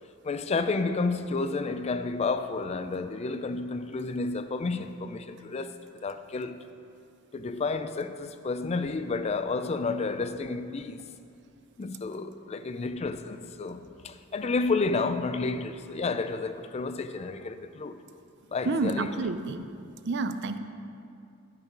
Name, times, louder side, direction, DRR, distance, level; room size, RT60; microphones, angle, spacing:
voice 1, 0.2-6.6 7.3-11.1 11.8-18.0 18.5-19.1, left 3 dB, 30° left, 0.4 m, -31 dB
voice 2, 18.7-19.7 20.1-20.6, right 3 dB, 55° right, 0.5 m, -29 dB
11.0 x 5.4 x 5.3 m
head